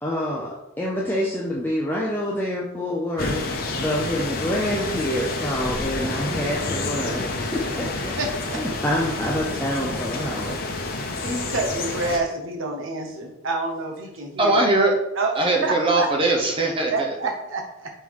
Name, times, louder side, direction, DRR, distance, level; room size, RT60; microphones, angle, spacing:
voice 1, 0.0-8.2 8.6-10.6, equal, 10° left, -4 dB, 0.6 m, -27 dB
sound 1, 3.2-12.2, left 2 dB, 45° left, 0.8 m, -29 dB
voice 2, 8.2-8.6 10.9-14.6 15.1-16.1 16.9-17.9, right 3 dB, 65° right, 2 dB, 1.0 m, -28 dB
voice 3, 14.4-14.9 15.4-17.1, right 2 dB, 25° right, 1 dB, 0.8 m, -20 dB
5.4 x 3.8 x 4.8 m, 0.92 s
head